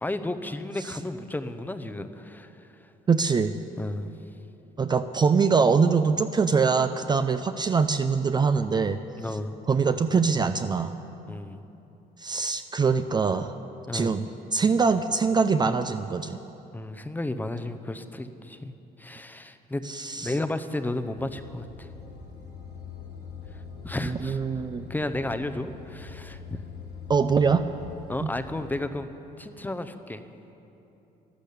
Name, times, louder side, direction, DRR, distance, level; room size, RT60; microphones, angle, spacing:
voice 1, 0.0-2.7 3.8-4.1 9.2-9.5 11.3-11.6 13.9-14.1 16.7-18.7 19.0-19.8 20.2-21.9 23.8-24.4 24.9-26.6 28.1-29.1 29.4-30.2, left 2 dB, 10° left, 10 dB, 0.7 m, -33 dB
voice 2, 3.1-3.5 4.8-9.0 9.7-10.9 12.2-13.5 13.9-14.2 14.5-16.4 19.8-20.3 24.0-24.9 27.1-27.7 28.2-28.3, right 5 dB, 25° right, 10 dB, 0.4 m, -23 dB
sound 1, 21.2-28.7, left 4 dB, 80° left, 3.4 m, -43 dB
12.0 x 12.0 x 8.4 m, 3.0 s
cardioid pair, 110°, 17 cm